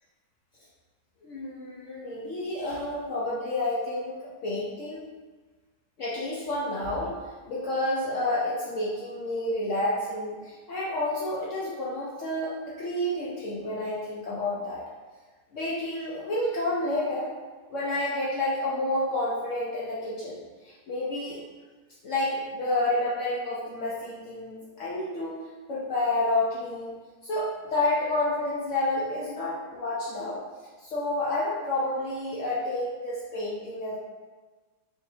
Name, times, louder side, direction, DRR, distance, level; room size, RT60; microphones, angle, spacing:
voice 1, 1.2-5.1 6.0-7.1 7.5-14.8 15.5-17.3 17.7-21.4 22.0-25.4 25.7-27.0 27.2-30.4 30.8-34.0, left 1 dB, 85° left, -7 dB, 0.6 m, -29 dB
4.9 x 2.6 x 2.7 m, 1.3 s
omnidirectional pair, 2.1 m